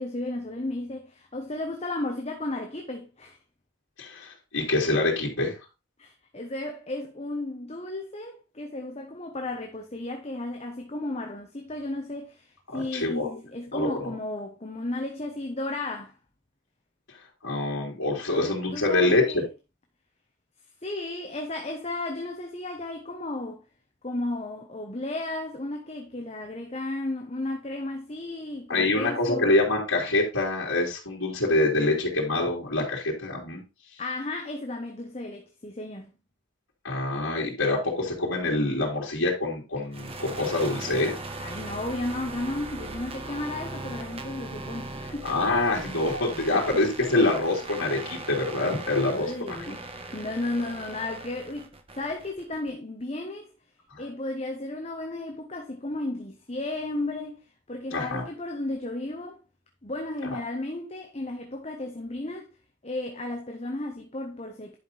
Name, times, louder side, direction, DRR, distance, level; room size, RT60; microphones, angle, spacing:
voice 1, 0.0-3.4 6.0-16.2 18.3-19.4 20.8-23.6 24.0-29.5 34.0-36.1 41.4-45.3 46.5-46.9 49.0-49.9 50.1-53.5 54.0-57.4 57.7-59.4 59.8-62.5 62.8-64.8, left 2 dB, 30° left, 1.1 m, -34 dB
voice 2, 4.0-5.6 12.7-13.3 13.7-14.1 17.4-19.4 28.7-33.6 36.8-41.1 45.2-49.6 53.9-54.0 57.9-58.2, left 2 dB, 80° left, 3.2 m, -25 dB
sound 1, 39.9-52.7, right 2 dB, 25° right, 1.1 m, -39 dB
11.0 x 5.3 x 4.1 m
head